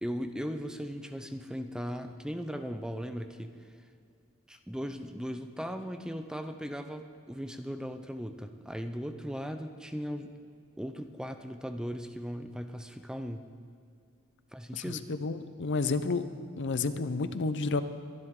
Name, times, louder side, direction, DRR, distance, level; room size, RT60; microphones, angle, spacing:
voice 1, 0.0-3.7 4.5-10.3 10.8-13.5 14.5-15.1, equal, 5° right, 8 dB, 0.5 m, -38 dB
voice 2, 14.7-16.3 16.6-17.8, left 3 dB, 55° left, 12 dB, 0.6 m, -30 dB
23.5 x 11.0 x 3.7 m, 2.3 s
head